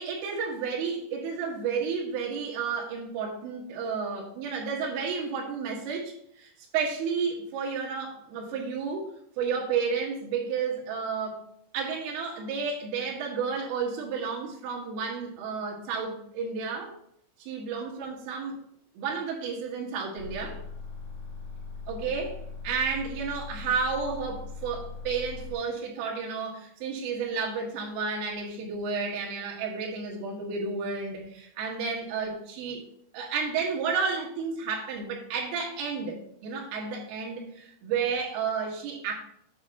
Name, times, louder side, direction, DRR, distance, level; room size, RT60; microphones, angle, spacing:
voice 1, 0.0-9.1 9.4-11.4 11.7-16.9 17.4-18.6 19.0-20.6 21.9-22.4 22.6-32.8 33.1-39.1, right 5 dB, 80° right, -2 dB, 4.2 m, -31 dB
sound 1, 20.2-25.5, left 4 dB, 55° left, 5.1 m, -40 dB
9.8 x 6.4 x 2.9 m, 0.72 s
omnidirectional pair, 5.7 m